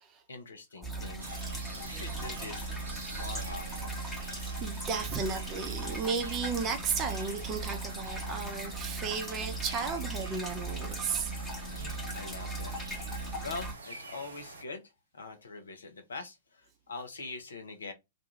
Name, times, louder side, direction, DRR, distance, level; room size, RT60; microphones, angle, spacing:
voice 1, 0.3-2.8 3.1-4.0 11.8-12.7 13.2-17.9, left 3 dB, 70° left, 0.6 m, -44 dB
sound 1, 0.8-13.7, right 2 dB, 5° left, 0.9 m, -38 dB
sound 2, 1.2-14.6, right 3 dB, 70° right, 0.6 m, -47 dB
voice 2, 4.6-11.3, right 5 dB, 30° right, 0.6 m, -34 dB
2.5 x 2.3 x 2.9 m
figure-of-eight pair, 105°, 0 cm